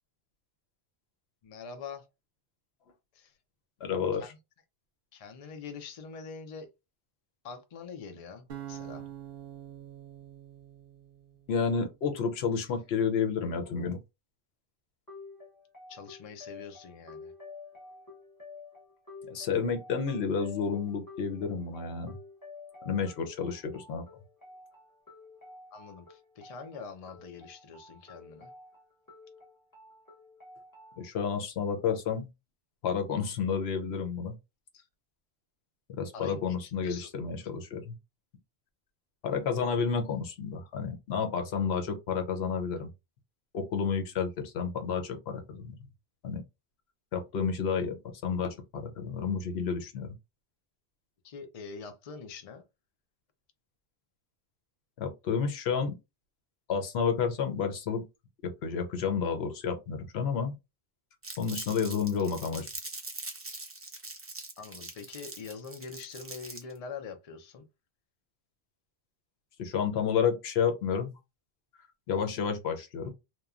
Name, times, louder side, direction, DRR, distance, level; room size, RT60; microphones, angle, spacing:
voice 1, 1.4-2.1 3.1-3.3 4.2-4.4 5.1-6.7 7.4-9.1 15.9-17.3 25.7-28.5 36.1-37.1 51.2-52.6 64.6-67.6, left 5 dB, 50° left, 0.4 m, -44 dB
voice 2, 3.8-4.2 11.5-14.0 19.3-22.1 22.8-24.0 31.0-32.3 32.8-34.3 35.9-37.9 39.2-42.9 43.5-45.8 46.2-46.4 47.1-50.1 55.0-56.0 56.7-58.1 58.4-60.5 61.4-62.7 69.6-71.1 72.1-73.1, left 6 dB, 80° left, 0.9 m, -30 dB
sound 1, 8.5-11.7, right 11 dB, 65° right, 0.7 m, -45 dB
sound 2, 15.1-31.1, left 3 dB, 20° left, 1.2 m, -50 dB
Crumpling crinkling, 61.2-66.8, right 2 dB, 20° right, 0.4 m, -42 dB
2.9 x 2.2 x 2.4 m
omnidirectional pair, 1.1 m